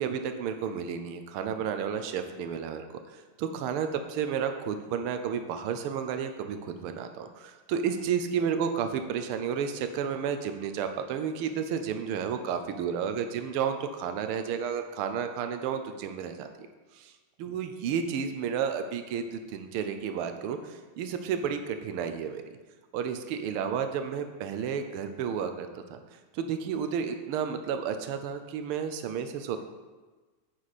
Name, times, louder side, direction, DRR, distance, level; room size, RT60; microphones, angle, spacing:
voice 1, 0.0-2.8 3.1-16.7 16.9-17.1 17.4-22.4 22.9-26.0 26.3-29.6, right 7 dB, 85° right, 7 dB, 1.6 m, -32 dB
9.8 x 6.1 x 4.1 m, 1.3 s
omnidirectional pair, 2.3 m